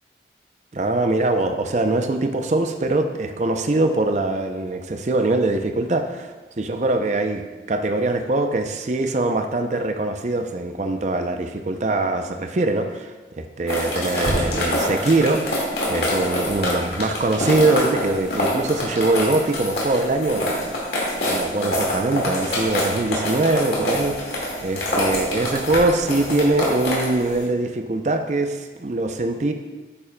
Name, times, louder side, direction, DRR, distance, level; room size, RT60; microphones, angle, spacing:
voice 1, 0.7-7.4 7.7-20.8 21.2-29.5, right 2 dB, 40° right, 6 dB, 0.5 m, -23 dB
sound 1, 13.7-27.4, left 1 dB, 65° left, 1.9 m, -26 dB
8.6 x 6.9 x 2.2 m, 1.2 s
head